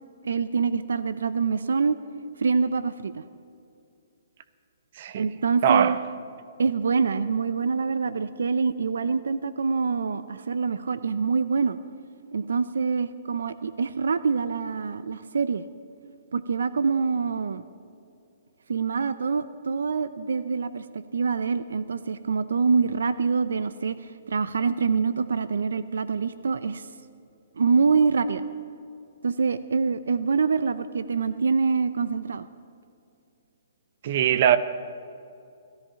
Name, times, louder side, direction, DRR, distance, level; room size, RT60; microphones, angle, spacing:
voice 1, 0.2-2.0 2.4-3.2 5.1-6.0 6.6-11.8 12.3-15.6 16.3-17.6 18.7-20.8 21.1-26.9 27.6-28.4 29.2-32.5, right 5 dB, 85° right, 0.6 m, -25 dB
voice 2, 5.6-6.0 34.0-34.6, right 9 dB, 45° right, 0.8 m, -21 dB
18.5 x 13.5 x 5.8 m
hypercardioid pair, 160°, 0 cm